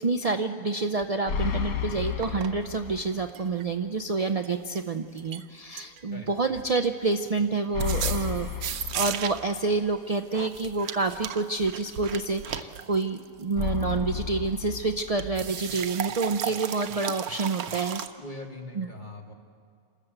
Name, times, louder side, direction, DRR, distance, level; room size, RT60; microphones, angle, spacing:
voice 1, 0.0-18.0 18.8-18.9, right 3 dB, 60° right, 5 dB, 0.3 m, -28 dB
sound 1, 1.0-1.1 2.2-2.5 3.0-3.6 4.4-4.8 5.2-5.4 5.8-6.3 6.6-7.4 7.8-9.5 10.3-13.8 15.2-18.1, right 9 dB, 80° right, 1.3 m, -35 dB
sound 2, 1.3-3.3 3.6-3.7 7.7-9.7 13.6-15.5, left 7 dB, 75° left, 1.5 m, -32 dB
voice 2, 6.1-6.6 18.2-19.3, left 2 dB, 30° left, 0 dB, 2.5 m, -42 dB
28.0 x 13.5 x 7.9 m, 2.2 s
omnidirectional pair, 1.5 m